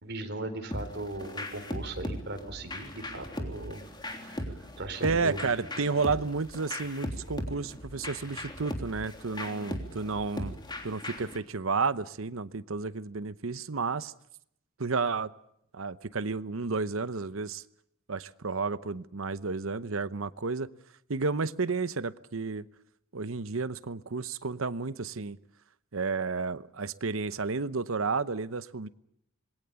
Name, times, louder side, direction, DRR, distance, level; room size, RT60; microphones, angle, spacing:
voice 1, 0.0-3.8 4.8-5.5, right 2 dB, 55° right, 5 dB, 4.1 m, -38 dB
sound 1, 0.7-11.4, left 1 dB, 20° left, 3.3 m, -38 dB
voice 2, 5.0-10.5 10.8-14.1 14.8-15.3 15.7-17.6 18.1-20.7 21.1-22.6 23.1-25.4 25.9-28.9, right 4 dB, 75° right, 15 dB, 0.9 m, -31 dB
26.5 x 21.5 x 7.0 m, 0.75 s
head